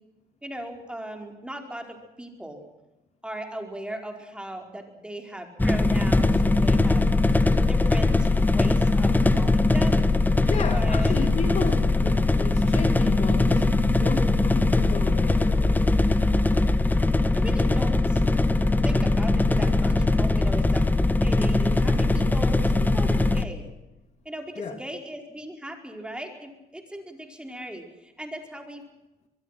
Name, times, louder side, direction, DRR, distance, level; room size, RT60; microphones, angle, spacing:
voice 1, 0.4-2.6 3.2-10.0 10.7-11.1 17.3-18.2 18.8-20.8 21.2-23.7 24.2-28.8, right 1 dB, 5° right, 4.9 m, -38 dB
sound 1, 5.6-23.4, left 2 dB, 10° left, 1.6 m, -21 dB
voice 2, 10.4-16.0 21.1-21.3 24.6-24.8, left 5 dB, 40° left, 2.8 m, -33 dB
25.0 x 22.5 x 6.0 m
cardioid pair, 110°, 17 cm